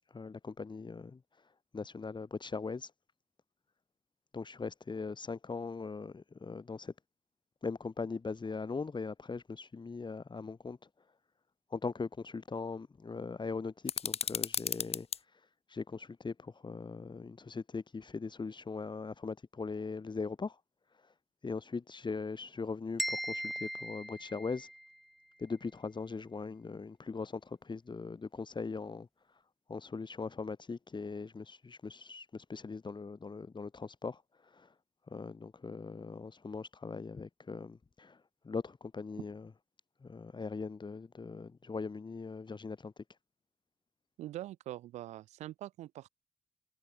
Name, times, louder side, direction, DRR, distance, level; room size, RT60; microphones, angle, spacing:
voice 1, 0.1-1.2 1.7-2.9 4.3-6.9 7.6-10.8 11.7-15.1 15.7-20.6 21.4-24.7 25.4-29.1 29.7-34.2 34.5-34.7 35.1-38.2 38.4-39.5 40.0-42.9, left 4 dB, 40° left, 3.1 m, -40 dB
sound 1, 13.9-15.2, left 7 dB, 60° left, 3.4 m, -35 dB
sound 2, 23.0-25.0, equal, ahead, 7.0 m, -38 dB
voice 2, 44.2-46.1, right 14 dB, 85° right, 4.7 m, -43 dB
hypercardioid pair, 40°, 11 cm